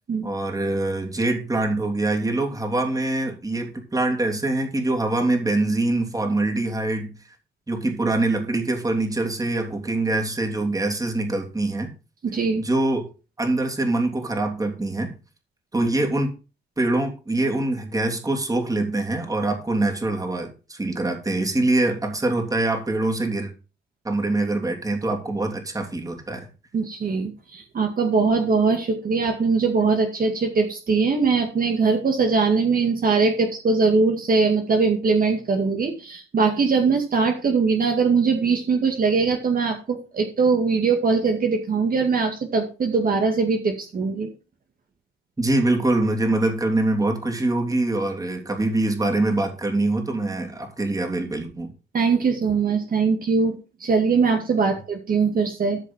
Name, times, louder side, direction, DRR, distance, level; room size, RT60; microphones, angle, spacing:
voice 1, 0.2-7.1 7.7-11.9 12.6-13.1 13.4-15.1 15.7-16.3 16.8-23.5 24.0-26.5 45.4-51.7, right 2 dB, 15° right, 3 dB, 3.2 m, -24 dB
voice 2, 12.2-12.6 26.7-44.3 51.9-55.8, right 4 dB, 45° right, 3 dB, 2.1 m, -21 dB
13.5 x 5.2 x 5.7 m, 0.33 s
cardioid pair, 90°, 20 cm